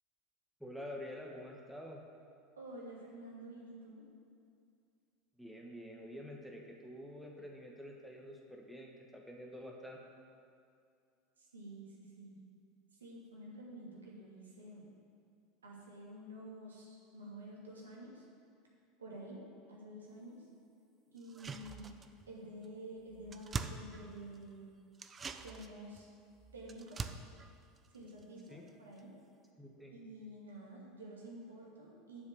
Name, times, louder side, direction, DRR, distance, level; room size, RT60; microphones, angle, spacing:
voice 1, 0.6-2.0 5.4-10.0 28.5-28.6 29.6-29.9, equal, ahead, 0 dB, 1.4 m, -48 dB
voice 2, 2.6-4.1 11.4-12.4 13.0-14.9 15.6-18.3 19.0-19.4 19.7-20.5 21.1-21.9 22.3-24.8 25.4-26.1 26.5-27.1 27.9-29.1 29.9-32.2, right 1 dB, 80° right, -4 dB, 2.4 m, -50 dB
sound 1, 21.2-22.3 22.6-22.7 23.0-24.5 24.9-28.7 29.0-29.1, right 5 dB, 25° right, 0.6 m, -45 dB
7.3 x 7.3 x 8.1 m, 2.4 s
figure-of-eight pair, 75°, 0 cm